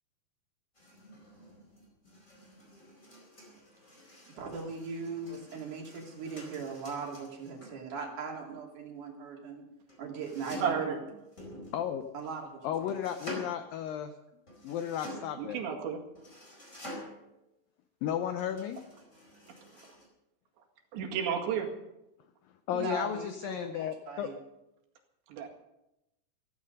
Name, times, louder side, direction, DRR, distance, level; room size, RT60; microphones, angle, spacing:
sound 1, 0.7-7.8 9.9-10.9 11.3-12.3 12.9-13.6 14.5-15.4 16.1-17.3 18.4-20.0, equal, 20° left, 4.7 m, -48 dB
voice 1, 4.4-9.7 10.0-11.0 12.1-12.6 22.7-24.3, right 4 dB, 50° right, 0 dB, 3.9 m, -39 dB
voice 2, 10.6-11.0 15.4-16.0 20.9-21.7 25.3-25.5, right 7 dB, 85° right, 2 dB, 4.2 m, -31 dB
voice 3, 11.7-12.0 12.6-14.1 14.6-15.6 18.0-18.8 22.7-24.3, left 9 dB, 85° left, 8 dB, 2.0 m, -34 dB
15.0 x 14.5 x 5.3 m, 0.89 s
omnidirectional pair, 5.0 m